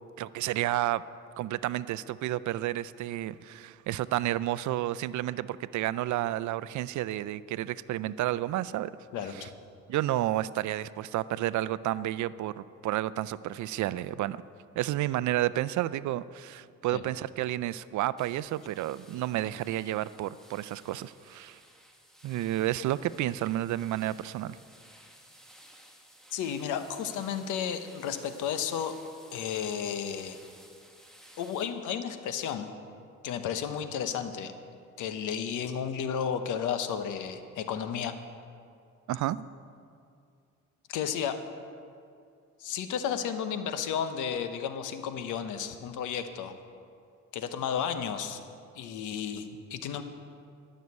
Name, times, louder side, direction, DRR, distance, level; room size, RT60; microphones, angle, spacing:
voice 1, 0.2-1.0 1.4-8.9 9.3-9.5 9.9-14.4 14.8-21.6 22.2-24.6 39.1-39.5, right 14 dB, 70° right, 17 dB, 0.5 m, -31 dB
voice 2, 9.1-9.5 16.9-17.0 26.3-28.9 29.3-30.4 31.4-32.7 33.2-34.5 35.0-38.1 40.9-41.4 42.6-46.5 47.3-48.4 48.7-50.0, left 8 dB, 85° left, 9 dB, 1.0 m, -33 dB
sound 1, 18.2-31.7, equal, ahead, 1.6 m, -56 dB
12.5 x 6.7 x 9.3 m, 2.4 s
cardioid pair, 90°, 30 cm